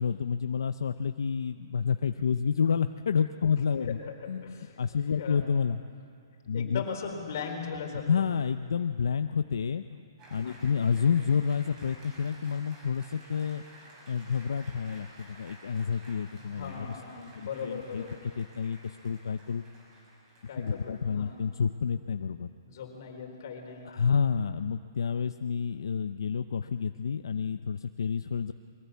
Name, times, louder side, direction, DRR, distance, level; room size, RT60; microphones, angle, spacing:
voice 1, 0.0-4.0 4.3-5.8 6.5-6.8 8.1-10.0 10.3-13.6 14.1-17.0 17.3-18.0 18.4-19.6 20.6-22.5 23.8-28.5, left 6 dB, 80° left, 9 dB, 0.7 m, -29 dB
voice 2, 3.8-5.5 6.5-8.1 10.4-10.7 16.4-18.3 20.5-21.4 22.7-24.0, left 6 dB, 50° left, 2 dB, 4.2 m, -39 dB
Applause, 10.2-21.5, right 1 dB, 20° right, 5.1 m, -53 dB
22.5 x 18.0 x 8.4 m, 2.3 s
hypercardioid pair, 160°, 2 cm